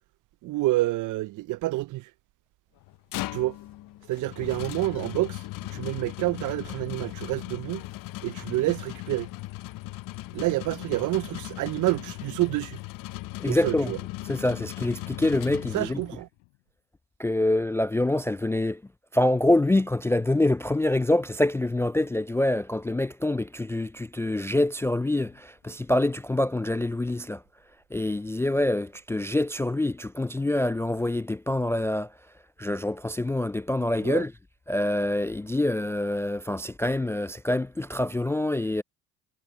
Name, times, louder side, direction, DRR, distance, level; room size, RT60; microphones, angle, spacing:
voice 1, 0.4-2.1 3.3-3.6 4.1-5.4 5.7-7.8 8.2-9.3 10.3-12.8 13.4-14.0 15.7-16.3 34.0-34.2, right 18 dB, 55° right, 0.6 m, -28 dB
sound 1, 2.8-16.3, left 18 dB, 60° left, 0.8 m, -38 dB
voice 2, 13.4-13.9 14.3-16.0 17.2-18.8 19.1-27.4 27.9-32.1 32.6-34.3 34.7-38.8, left 1 dB, 5° left, 0.3 m, -26 dB
sound 2, 16.1-17.0 17.6-18.1 18.5-18.6 19.6-19.7 19.8-19.9 20.8-20.9 21.2-21.3 21.5-21.6 21.8-22.3 22.8-22.9 25.0-26.3 26.7-26.9 27.4-27.5, left 36 dB, 80° left, 7.5 m, -67 dB
hypercardioid pair, 70°, 37 cm